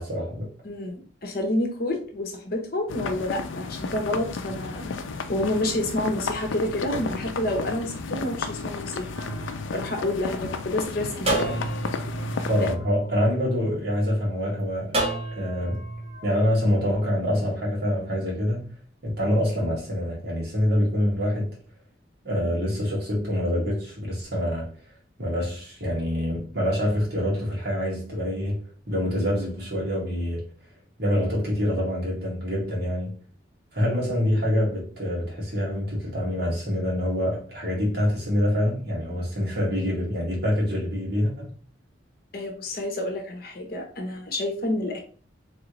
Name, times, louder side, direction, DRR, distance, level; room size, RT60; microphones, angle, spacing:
voice 1, 0.0-0.5 12.5-15.0 15.4-15.8 16.2-18.7 19.0-21.5 22.2-24.7 25.2-30.4 31.0-33.1 33.7-41.5, equal, 55° right, 1.7 m, -26 dB
voice 2, 0.6-4.9 5.3-9.1 9.7-11.6 42.3-45.0, left 1 dB, 50° left, 0.8 m, -29 dB
sound 1, 2.9-12.7, left 4 dB, 80° left, 0.4 m, -33 dB
sound 2, 9.1-10.6 11.3-13.8 14.9-16.3, right 2 dB, 30° right, 0.9 m, -31 dB
3.8 x 3.3 x 3.0 m
head